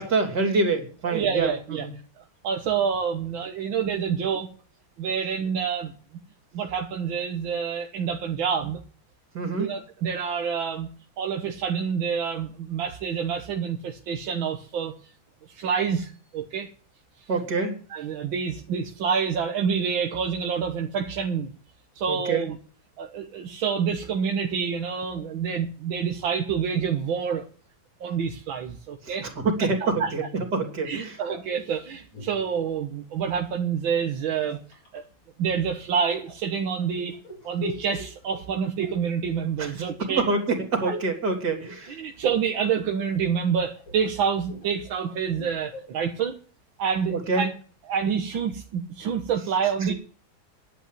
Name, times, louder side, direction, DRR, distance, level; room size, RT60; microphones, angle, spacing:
voice 1, 0.0-1.9 9.3-9.7 17.3-17.8 22.1-22.5 29.0-31.2 39.6-42.0 47.1-47.4 49.9-50.0, right 3 dB, 55° right, 4 dB, 3.8 m, -26 dB
voice 2, 1.1-1.9 2.2-4.5 5.0-5.9 6.5-8.8 9.6-10.9 11.2-15.0 15.5-16.7 17.9-21.5 22.0-22.6 23.0-27.5 28.0-29.3 29.6-30.1 30.9-34.6 34.9-35.0 35.4-37.2 37.4-40.3 40.8-40.9 42.0-46.4 46.8-47.5 47.9-49.9, right 7 dB, 80° right, 3 dB, 2.0 m, -27 dB
sound 1, 31.3-33.5 34.2-35.0 36.1-40.1 40.4-41.2 41.5-42.4 42.8-46.0, right 1 dB, 75° left, 4.9 m, -42 dB
11.0 x 8.4 x 9.1 m, 0.42 s
omnidirectional pair, 2.1 m